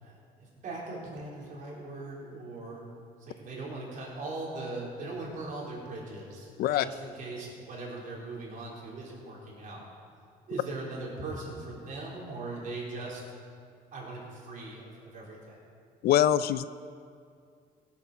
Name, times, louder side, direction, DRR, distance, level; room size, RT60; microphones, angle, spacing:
voice 1, 0.0-2.9 3.2-9.9 10.5-13.2 13.9-15.6, right 2 dB, 50° right, -4 dB, 4.2 m, -40 dB
voice 2, 16.0-16.7, left 11 dB, 65° left, 15 dB, 0.5 m, -23 dB
17.0 x 8.1 x 5.7 m, 2.2 s
cardioid pair, 110°, 17 cm